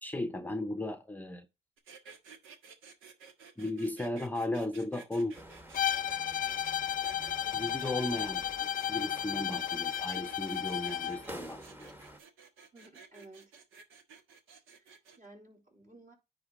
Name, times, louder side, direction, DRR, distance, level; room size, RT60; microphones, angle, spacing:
voice 1, 0.0-1.5 3.6-5.3 7.5-8.4 8.9-12.0, left 1 dB, 10° left, 0.7 m, -35 dB
sound 1, 1.8-15.3, right 5 dB, 85° right, 1.3 m, -53 dB
sound 2, 5.3-12.2, right 1 dB, 10° right, 1.2 m, -50 dB
Bowed string instrument, 5.7-11.2, left 10 dB, 45° left, 0.5 m, -33 dB
voice 2, 12.7-13.5 14.7-14.9 15.2-16.1, right 2 dB, 45° right, 3.7 m, -55 dB
9.7 x 3.9 x 3.7 m
cardioid pair, 90°, 20 cm